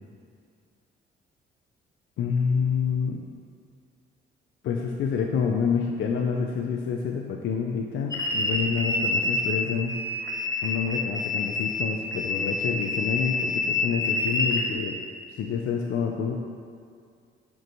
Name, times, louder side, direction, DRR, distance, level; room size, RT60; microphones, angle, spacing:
voice 1, 2.2-3.2 4.6-10.0 10.6-15.0 15.3-16.4, left 6 dB, 75° left, 2 dB, 0.7 m, -28 dB
sound 1, 8.1-9.6 9.9-14.7, left 3 dB, 20° left, 1.6 m, -27 dB
12.0 x 5.5 x 4.6 m, 2.2 s
cardioid pair, 90°, 20 cm